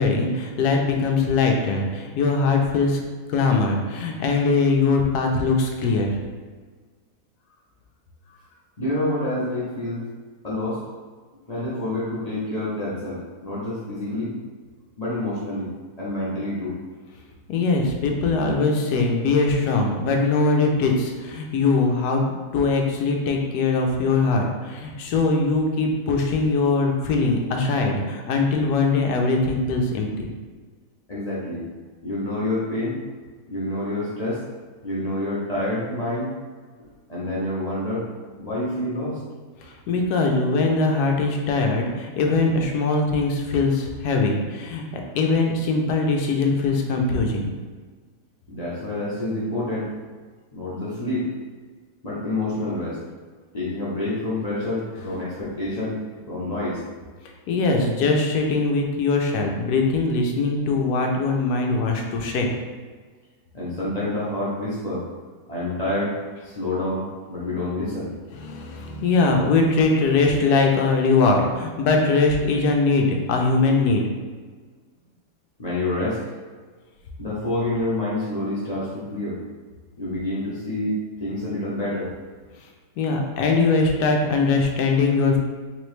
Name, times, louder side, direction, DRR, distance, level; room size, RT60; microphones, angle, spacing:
voice 1, 0.0-3.0 3.3-6.1 17.5-22.2 22.5-30.3 39.6-47.5 55.1-55.2 57.5-62.5 68.3-74.0 83.0-85.4, left 3 dB, 85° left, 2 dB, 1.2 m, -21 dB
voice 2, 8.8-10.1 10.4-10.8 11.5-14.3 15.0-15.7 16.0-16.8 31.1-31.6 32.0-33.0 33.5-34.4 34.8-36.3 37.1-38.1 38.4-39.2 48.5-49.9 50.5-51.3 52.0-53.0 53.5-56.0 56.3-56.8 63.5-65.0 65.5-66.1 66.4-68.1 75.6-76.2 77.2-79.4 80.0-80.9 81.2-82.1, left 1 dB, 30° left, -8 dB, 0.8 m, -27 dB
3.8 x 3.0 x 3.2 m, 1.5 s
omnidirectional pair, 1.6 m